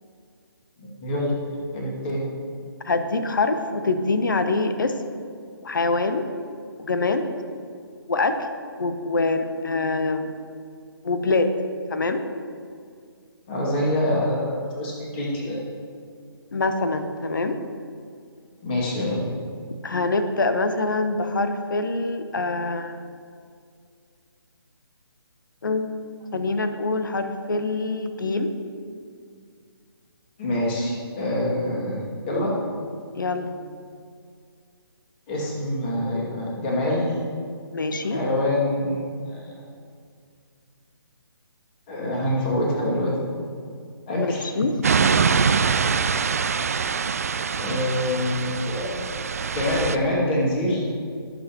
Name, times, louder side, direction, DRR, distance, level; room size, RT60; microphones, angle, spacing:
voice 1, 0.8-1.3 1.7-2.2 13.5-15.6 18.6-19.3 30.4-32.5 35.3-37.1 38.1-39.6 41.9-43.2 44.1-44.5 47.6-49.1 49.5-50.9, left 1 dB, 25° left, -4 dB, 2.3 m, -25 dB
voice 2, 2.8-4.9 5.6-6.3 6.8-7.3 8.1-8.4 8.8-10.3 11.0-11.5 11.9-12.2 16.5-17.6 19.8-23.0 25.6-25.9 26.3-28.5 33.1-33.6 37.7-38.2 44.1-44.8, left 3 dB, 55° left, 8 dB, 0.9 m, -24 dB
sound 1, 44.8-50.0, right 5 dB, 35° right, 0.4 m, -24 dB
20.5 x 6.9 x 3.0 m, 2.2 s
figure-of-eight pair, 140°, 13 cm